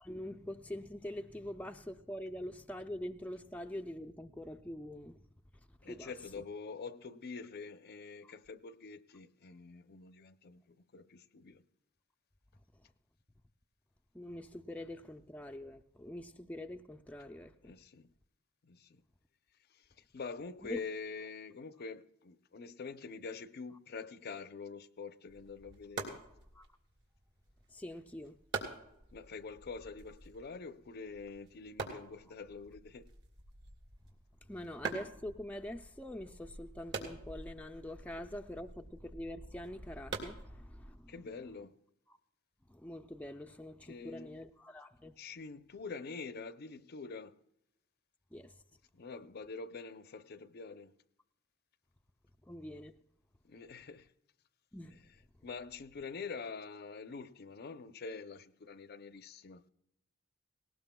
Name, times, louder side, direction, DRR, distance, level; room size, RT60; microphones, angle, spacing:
voice 1, 0.0-5.2 5.8-6.1 8.2-8.3 14.1-17.7 20.6-20.8 26.6-26.7 27.7-28.3 34.5-41.1 42.7-45.1 48.3-48.5 52.5-52.9 54.7-55.0, left 1 dB, 5° left, 0.4 m, -44 dB
voice 2, 5.8-11.6 17.6-18.1 18.6-19.0 19.7-26.2 29.1-33.1 41.1-41.8 43.9-44.4 45.2-47.3 48.9-50.9 53.4-54.1 55.4-59.6, left 4 dB, 50° left, 0.6 m, -46 dB
sound 1, 25.3-41.1, right 4 dB, 60° right, 2.8 m, -46 dB
19.0 x 18.0 x 2.2 m
head